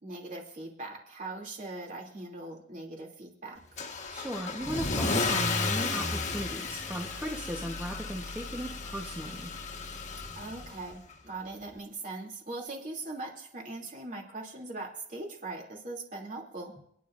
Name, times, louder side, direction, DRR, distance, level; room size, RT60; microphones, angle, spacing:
voice 1, 0.0-3.6 10.3-16.7, right 2 dB, 45° right, 0 dB, 2.9 m, -40 dB
Car / Engine starting / Accelerating revving vroom, 3.8-10.9, left 3 dB, 40° left, 1.4 m, -33 dB
voice 2, 4.1-9.5, equal, 10° right, 0 dB, 1.1 m, -37 dB
29.5 x 10.0 x 2.6 m, 0.69 s
head